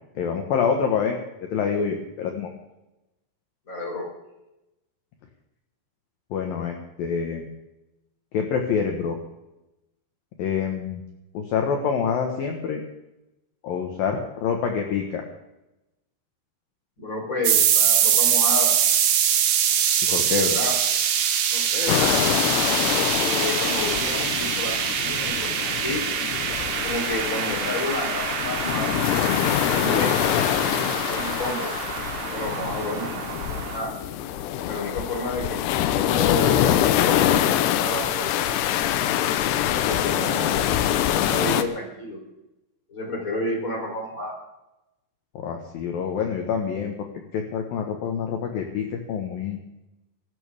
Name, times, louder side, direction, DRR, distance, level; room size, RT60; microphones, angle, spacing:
voice 1, 0.2-1.2 1.5-2.5 6.3-7.5 8.3-9.2 10.4-11.0 11.3-12.8 13.6-15.2 20.1-20.6 45.3-47.1 47.3-49.6, left 6 dB, 65° left, 3 dB, 2.4 m, -26 dB
voice 2, 3.7-4.1 17.0-18.7 20.1-20.8 21.5-22.2 22.9-26.0 26.8-30.1 30.4-31.7 32.3-33.9 34.7-35.6 35.9-37.5 37.7-38.7 39.8-40.7 41.0-42.2 42.9-44.4, left 2 dB, 20° left, 1 dB, 3.5 m, -31 dB
sound 1, 17.4-33.8, right 8 dB, 80° right, 4.1 m, -24 dB
sound 2, 21.9-41.6, left 11 dB, 85° left, 2.4 m, -25 dB
26.0 x 13.5 x 3.6 m, 0.95 s
omnidirectional pair, 5.9 m